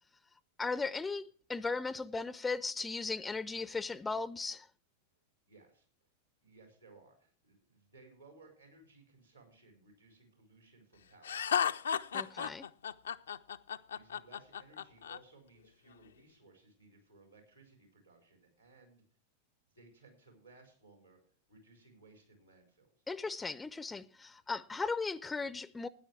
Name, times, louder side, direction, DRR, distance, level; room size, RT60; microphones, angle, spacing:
voice 1, 0.6-4.7 12.1-12.7 23.1-25.9, left 4 dB, 10° left, 0.5 m, -37 dB
voice 2, 5.5-5.9 6.4-11.7 13.9-19.0 19.7-21.2 21.5-22.9, right 3 dB, 85° right, 4.5 m, -61 dB
Laughter, 11.2-15.2, left 8 dB, 65° left, 0.4 m, -34 dB
13.0 x 9.8 x 4.7 m
figure-of-eight pair, 90°, 0 cm